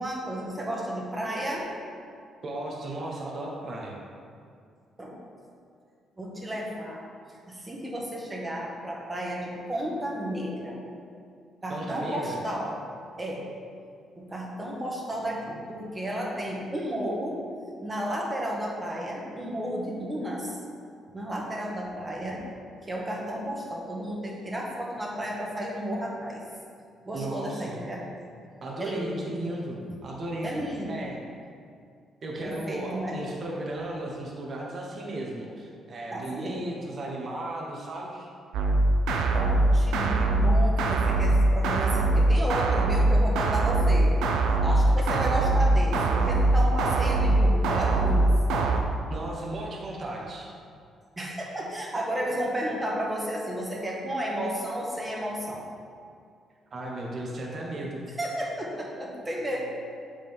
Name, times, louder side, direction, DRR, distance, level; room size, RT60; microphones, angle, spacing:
voice 1, 0.0-1.7 5.0-5.2 6.2-7.0 7.5-10.8 11.6-12.7 13.2-13.5 14.2-17.4 17.8-20.6 21.1-22.4 22.9-26.4 27.0-28.0 28.8-29.3 30.4-30.9 32.4-33.2 36.1-36.6 39.3-44.1 44.6-48.3 51.2-55.6 58.2-59.7, equal, 20° right, -2 dB, 1.5 m, -32 dB
voice 2, 2.4-4.0 11.7-12.4 27.1-27.8 28.6-31.2 32.2-38.3 45.1-45.2 49.1-50.5 56.7-58.1, right 1 dB, 45° right, -2 dB, 1.2 m, -35 dB
sound 1, 38.5-48.8, right 2 dB, 85° right, 0.5 m, -22 dB
7.7 x 5.0 x 3.6 m, 2.3 s
cardioid pair, 90°, 0 cm